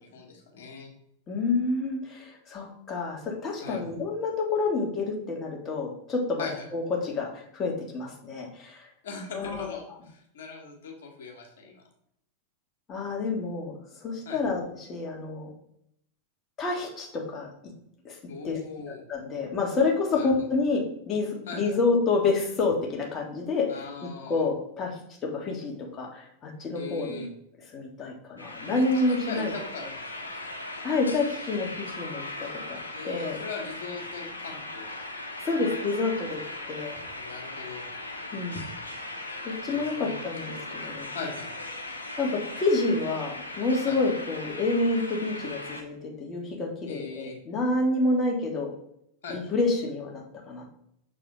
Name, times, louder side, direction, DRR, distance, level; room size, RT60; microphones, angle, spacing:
voice 1, 0.1-0.9 3.6-3.8 6.4-6.6 9.0-11.8 14.2-14.4 18.3-19.0 20.1-20.5 21.5-21.6 23.7-24.5 26.7-27.3 28.7-30.3 32.9-35.0 37.2-37.9 39.6-40.2 41.1-41.5 43.9-44.0 46.9-47.3 49.2-49.5, left 5 dB, 60° left, 1 dB, 1.7 m, -40 dB
voice 2, 1.3-6.5 6.7-8.9 9.3-9.8 12.9-15.5 16.6-17.5 18.0-18.2 18.4-18.6 19.1-23.8 24.3-27.2 27.7-29.5 30.8-32.2 32.7-33.4 35.4-37.0 38.3-38.6 39.4-41.1 42.2-48.7 49.3-50.8, left 3 dB, 25° left, 0 dB, 1.7 m, -28 dB
sound 1, 28.4-45.8, left 2 dB, 80° left, 0.9 m, -38 dB
6.9 x 4.2 x 3.8 m, 0.74 s
figure-of-eight pair, 90°, 0 cm